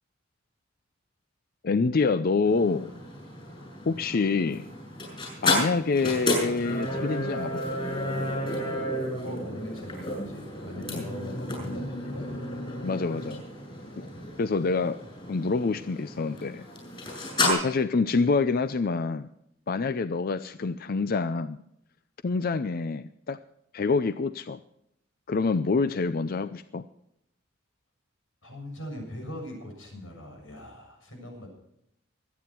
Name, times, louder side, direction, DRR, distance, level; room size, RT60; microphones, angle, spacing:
voice 1, 1.6-2.9 3.9-4.7 5.4-7.6 10.9-11.0 12.8-13.4 14.0-14.1 14.4-15.0 15.3-16.7 17.4-19.3 19.7-21.6 22.2-23.4 23.7-24.6 25.3-26.8, left 4 dB, 50° left, 12 dB, 0.5 m, -26 dB
sound 1, 2.4-17.5, left 1 dB, 30° left, 6.8 m, -32 dB
voice 2, 9.2-12.4 14.1-14.3 28.4-31.5, left 1 dB, 90° left, 1 dB, 7.1 m, -41 dB
24.5 x 9.4 x 4.5 m, 0.78 s
head